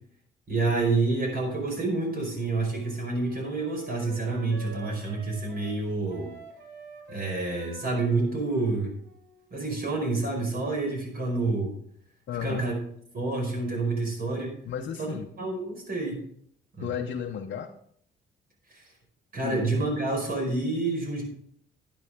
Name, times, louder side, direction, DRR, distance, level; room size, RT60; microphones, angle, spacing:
voice 1, 0.5-6.3 7.1-8.9 9.5-11.7 12.4-12.7 13.1-14.5 15.0-16.2 16.8-16.9 18.7-18.8 19.3-21.2, right 3 dB, 50° right, 1 dB, 5.0 m, -28 dB
Wind instrument woodwind instrument, 2.1-10.1, right 2 dB, 80° right, 2.2 m, -47 dB
voice 2, 12.3-12.7 14.6-15.3 16.8-17.7 19.4-19.7, left 8 dB, 60° left, 2 dB, 0.8 m, -33 dB
11.0 x 9.6 x 3.6 m, 0.66 s
cardioid pair, 90°, 20 cm